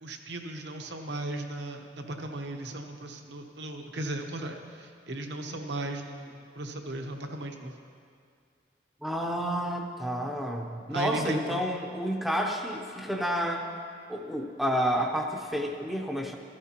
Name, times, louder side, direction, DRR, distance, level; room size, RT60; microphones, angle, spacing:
voice 1, 0.0-7.7 10.9-11.6, right 1 dB, 65° right, 4 dB, 0.9 m, -36 dB
voice 2, 9.0-13.7 14.1-16.4, equal, ahead, 1 dB, 0.7 m, -30 dB
14.5 x 13.5 x 2.9 m, 2.2 s
head